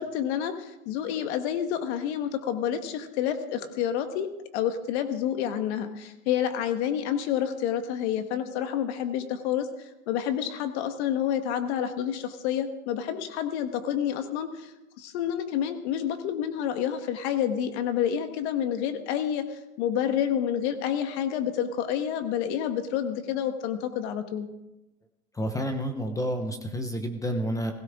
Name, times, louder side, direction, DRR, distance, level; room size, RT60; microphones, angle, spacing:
voice 1, 0.0-24.5, left 9 dB, 50° left, 8 dB, 1.5 m, -29 dB
voice 2, 25.3-27.7, equal, 10° left, 6 dB, 0.9 m, -29 dB
20.0 x 17.5 x 3.7 m, 0.94 s
supercardioid pair, 150°, 42 cm